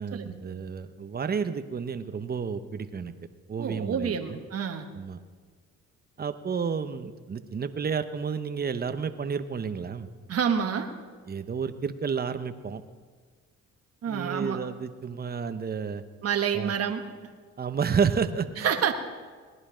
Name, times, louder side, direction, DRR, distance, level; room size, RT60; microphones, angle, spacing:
voice 1, 0.0-3.1 3.5-4.4 4.9-5.2 6.2-10.1 11.3-12.8 14.1-16.0 16.5-16.7 17.6-18.7, right 6 dB, 30° right, 10 dB, 0.8 m, -31 dB
voice 2, 3.6-4.9 10.3-10.9 14.0-14.6 16.2-17.0 18.6-18.9, right 7 dB, 50° right, 5 dB, 1.3 m, -28 dB
18.5 x 11.0 x 5.0 m, 1.5 s
cardioid pair, 90°, 30 cm